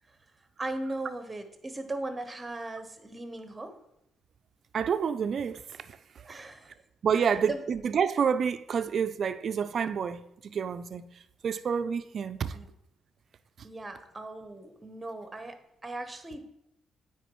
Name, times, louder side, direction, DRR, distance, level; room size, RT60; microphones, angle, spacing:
voice 1, 0.6-3.8 6.2-6.7 7.4-7.6 12.5-12.7 13.6-16.5, right 2 dB, 20° right, 0.9 m, -38 dB
voice 2, 4.7-5.6 5.9-6.4 7.0-11.0 11.4-12.6, right 7 dB, 55° right, 0.4 m, -29 dB
9.1 x 4.5 x 3.0 m
cardioid pair, 90°, 0 cm